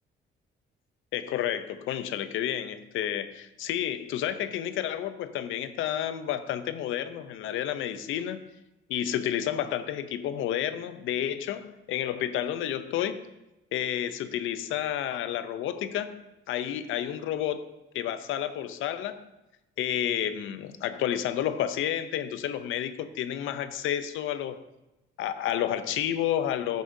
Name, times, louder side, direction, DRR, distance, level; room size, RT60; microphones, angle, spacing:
voice 1, 1.1-8.4 8.9-13.2 13.7-16.2 16.5-17.7 17.9-19.3 19.8-24.6 25.2-26.8, left 10 dB, 85° left, 0.6 m, -30 dB
15.0 x 6.4 x 2.7 m
cardioid pair, 90°, 20 cm